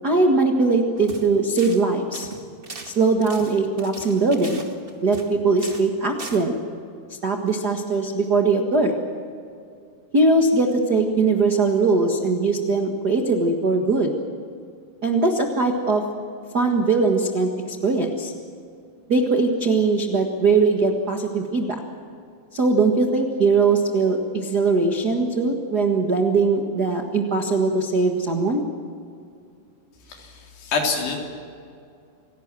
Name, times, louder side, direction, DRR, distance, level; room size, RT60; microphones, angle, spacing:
voice 1, 0.0-2.3 2.8-4.7 5.0-6.5 7.2-9.0 10.1-14.1 15.0-16.0 16.5-17.5 17.8-18.3 19.1-21.8 22.5-28.6, right 3 dB, 60° right, 3 dB, 1.0 m, -20 dB
sound 1, 1.0-1.3 1.6-1.8 2.1-5.3 5.6-5.9 6.2-6.4, right 3 dB, 85° right, 0.5 m, -39 dB
voice 2, 30.1-31.2, left 4 dB, 80° left, 0 dB, 5.6 m, -26 dB
28.0 x 18.0 x 7.5 m, 2.4 s
omnidirectional pair, 4.7 m